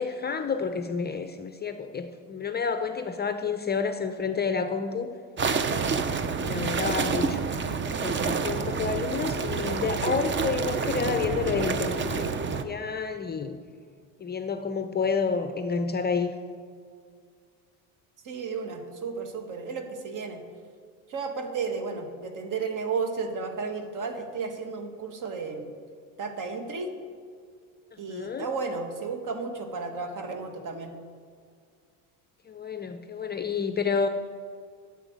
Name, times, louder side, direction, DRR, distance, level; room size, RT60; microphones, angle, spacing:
voice 1, 0.0-5.1 6.4-7.4 7.9-12.3 12.6-13.6 14.2-16.3 28.1-28.5 32.5-34.1, left 5 dB, 25° left, 8 dB, 0.6 m, -29 dB
sound 1, 5.4-12.6, right 5 dB, 25° right, 0.8 m, -28 dB
voice 2, 18.2-20.4 21.1-25.7 26.2-26.9 28.0-30.9, right 4 dB, 45° right, 5 dB, 1.9 m, -33 dB
10.0 x 8.1 x 8.1 m, 2.1 s
supercardioid pair, 100°, 43 cm